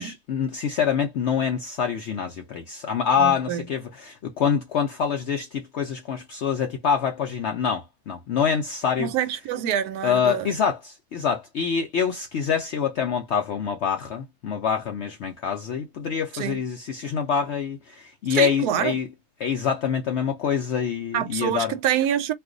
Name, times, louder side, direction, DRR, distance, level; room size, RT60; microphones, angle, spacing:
voice 1, 0.0-9.1 10.0-19.1 19.4-21.7, left 7 dB, 70° left, 0.6 m, -25 dB
voice 2, 3.2-3.7 9.0-10.5 16.3-16.6 18.3-19.0 21.1-22.3, right 10 dB, 75° right, 1.1 m, -26 dB
2.6 x 2.3 x 3.7 m
omnidirectional pair, 1.7 m